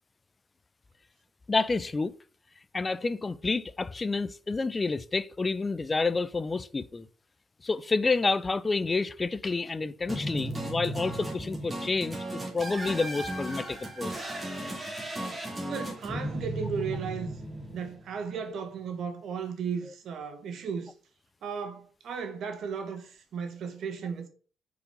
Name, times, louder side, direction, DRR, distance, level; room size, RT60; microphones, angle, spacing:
voice 1, 1.5-2.2 2.7-7.1 7.6-14.1, left 3 dB, 25° left, 0.4 m, -29 dB
sound 1, 10.1-18.3, right 1 dB, 20° right, 2.2 m, -36 dB
voice 2, 15.3-17.3 17.7-20.9 21.4-24.3, right 6 dB, 70° right, 1.3 m, -35 dB
5.3 x 4.8 x 5.2 m
cardioid pair, 90°, 0 cm